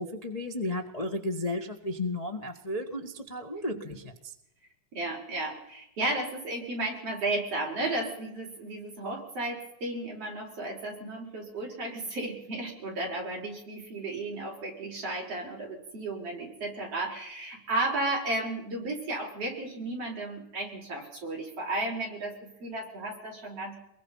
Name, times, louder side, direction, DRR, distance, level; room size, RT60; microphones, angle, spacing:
voice 1, 0.0-4.3, left 1 dB, 25° left, 3 dB, 0.7 m, -34 dB
voice 2, 4.9-23.7, right 2 dB, 50° right, -1 dB, 6.7 m, -34 dB
24.0 x 22.0 x 5.7 m, 0.82 s
omnidirectional pair, 3.5 m